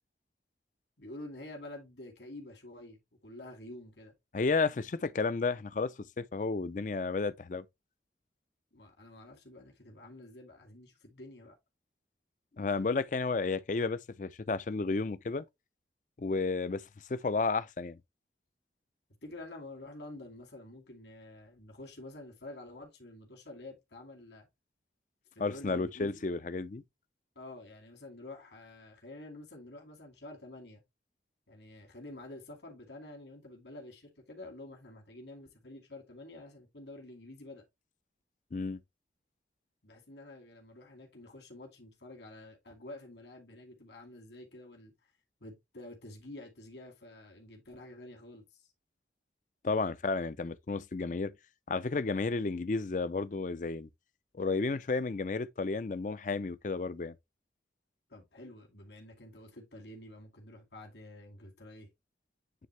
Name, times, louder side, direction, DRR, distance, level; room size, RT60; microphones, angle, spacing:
voice 1, 1.0-4.1 8.7-11.6 19.2-24.5 25.3-26.2 27.4-30.8 31.5-37.6 39.8-44.9 45.4-48.7 58.1-61.9, left 2 dB, 75° left, 2.4 m, -49 dB
voice 2, 4.3-7.6 12.6-15.4 16.2-16.8 17.1-18.0 25.4-26.8 38.5-38.8 49.6-51.3 51.7-53.9 54.4-57.1, left 3 dB, 45° left, 0.4 m, -32 dB
9.3 x 3.5 x 3.2 m
head